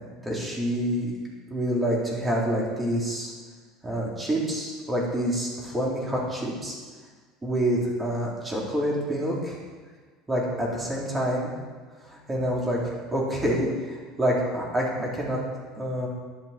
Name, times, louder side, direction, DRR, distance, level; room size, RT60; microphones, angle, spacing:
voice 1, 0.2-1.1 1.5-3.3 3.8-6.8 7.4-9.6 10.3-11.5 12.1-15.4 15.8-16.1, equal, 15° right, -4 dB, 3.8 m, -27 dB
12.5 x 12.0 x 4.5 m, 1.5 s
supercardioid pair, 120°, 0 cm